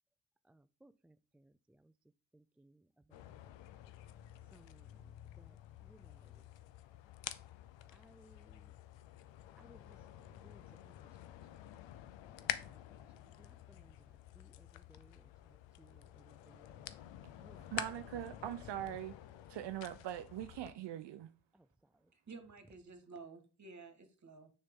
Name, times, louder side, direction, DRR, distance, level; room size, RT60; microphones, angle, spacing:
voice 1, 0.4-1.9 2.3-3.4 4.5-6.5 7.9-8.7 9.6-10.0 10.3-10.9 11.2-11.3 12.4-13.1 13.4-17.0 17.4-17.7 21.5-21.7 22.0-22.1, right 1 dB, 5° right, 0.3 m, -65 dB
sound 1, 3.1-20.7, left 12 dB, 80° left, 0.7 m, -49 dB
voice 2, 17.7-19.2 19.5-21.3, right 12 dB, 70° right, 0.6 m, -42 dB
voice 3, 22.1-24.5, right 4 dB, 40° right, 1.8 m, -53 dB
6.6 x 5.6 x 3.7 m
supercardioid pair, 55°, 44 cm